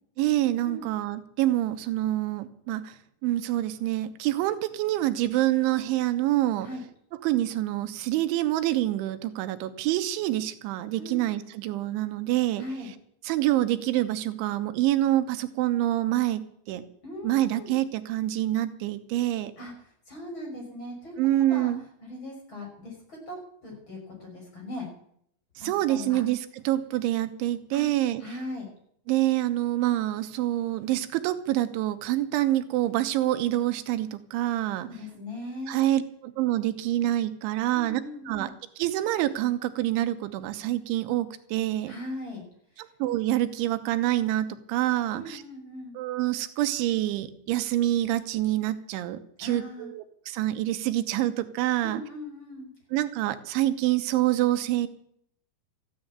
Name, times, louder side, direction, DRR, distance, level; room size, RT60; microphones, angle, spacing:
voice 1, 0.2-6.7 7.2-12.6 13.2-16.8 17.2-19.5 21.2-21.8 25.6-28.2 29.1-34.9 35.7-38.0 38.3-38.5 38.8-42.0 43.0-45.4 46.0-52.0 52.9-54.9, right 14 dB, 90° right, 11 dB, 3.4 m, -26 dB
voice 2, 12.6-12.9 17.0-17.7 19.6-19.7 20.1-21.7 22.0-24.9 25.6-26.2 27.7-27.9 28.2-28.7 34.8-35.8 37.7-38.5 41.9-42.4 45.1-46.0 49.4-49.9 51.8-52.7, left 1 dB, 25° left, 0 dB, 6.3 m, -39 dB
14.5 x 10.0 x 8.7 m, 0.68 s
omnidirectional pair, 5.2 m